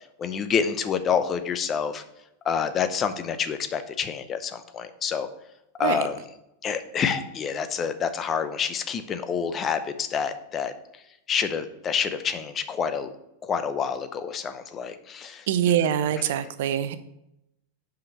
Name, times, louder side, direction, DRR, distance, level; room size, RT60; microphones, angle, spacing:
voice 1, 0.2-2.0 2.5-5.3 5.8-6.2 6.6-10.7 11.3-13.1 13.4-15.4, left 7 dB, 30° left, 0.7 m, -27 dB
voice 2, 15.5-17.0, right 10 dB, 65° right, 0.6 m, -24 dB
5.8 x 5.0 x 6.7 m
hypercardioid pair, 95°, 0 cm